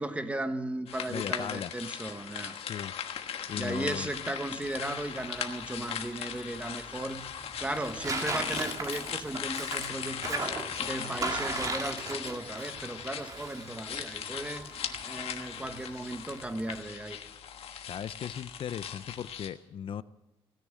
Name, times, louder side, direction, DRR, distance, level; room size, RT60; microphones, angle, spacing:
voice 1, 0.0-2.5 3.6-7.3 7.6-10.5 10.8-14.7 15.0-17.2, right 1 dB, 10° right, 9 dB, 1.2 m, -36 dB
sound 1, 0.9-19.5, left 8 dB, 80° left, 1.3 m, -39 dB
voice 2, 1.1-1.7 2.5-2.9 3.5-4.1 17.8-20.0, left 9 dB, 60° left, 16 dB, 0.5 m, -37 dB
Tearing, 4.6-16.8, right 3 dB, 35° right, 1.9 m, -39 dB
17.0 x 10.0 x 7.5 m, 0.98 s
cardioid pair, 125°, 10 cm